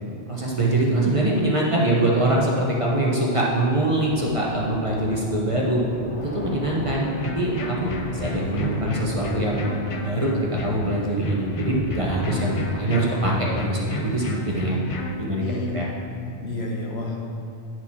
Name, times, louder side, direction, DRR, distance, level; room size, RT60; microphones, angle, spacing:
voice 1, 0.3-5.8 6.3-9.6 10.0-14.8 15.2-15.9, right 1 dB, 30° right, -3 dB, 0.9 m, -23 dB
sound 1, 3.9-13.3, equal, 10° left, 0.9 m, -37 dB
sound 2, 7.0-15.1, left 2 dB, 45° left, 0.4 m, -32 dB
voice 2, 15.4-15.8 16.1-17.2, left 2 dB, 70° left, -1 dB, 1.2 m, -32 dB
10.0 x 4.5 x 4.3 m, 2.5 s
omnidirectional pair, 1.2 m